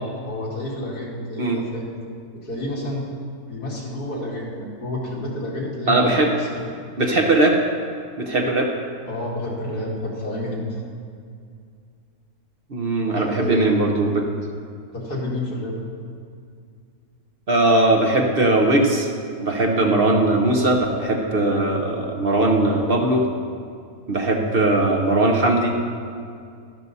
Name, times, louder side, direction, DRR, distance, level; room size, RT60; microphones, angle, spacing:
voice 1, 0.2-1.9 2.4-3.0 3.5-6.5 9.0-10.8 13.0-13.9 14.9-15.8 24.5-24.6, left 1 dB, 90° left, -4 dB, 2.8 m, -29 dB
voice 2, 5.9-6.3 7.0-7.6 8.2-8.7 12.7-14.2 17.5-19.1 19.4-23.2 24.1-25.7, right 2 dB, 45° right, 2 dB, 1.1 m, -19 dB
12.0 x 12.0 x 4.1 m, 2.3 s
omnidirectional pair, 1.6 m